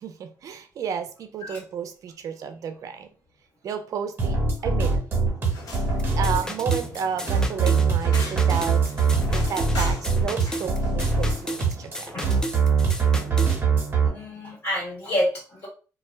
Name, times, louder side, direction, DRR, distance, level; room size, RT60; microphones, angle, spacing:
voice 1, 0.0-3.1 3.6-5.0 6.2-12.3, right 7 dB, 55° right, 8 dB, 0.4 m, -32 dB
sound 1, 4.2-14.1, right 5 dB, 30° right, 1.1 m, -23 dB
sound 2, 5.4-11.6, left 2 dB, 60° left, 1.0 m, -41 dB
sound 3, 6.0-13.6, equal, 10° left, 0.4 m, -35 dB
voice 2, 14.0-15.7, left 1 dB, 45° left, -5 dB, 1.4 m, -28 dB
2.2 x 2.0 x 3.1 m, 0.36 s
cardioid pair, 100°, 7 cm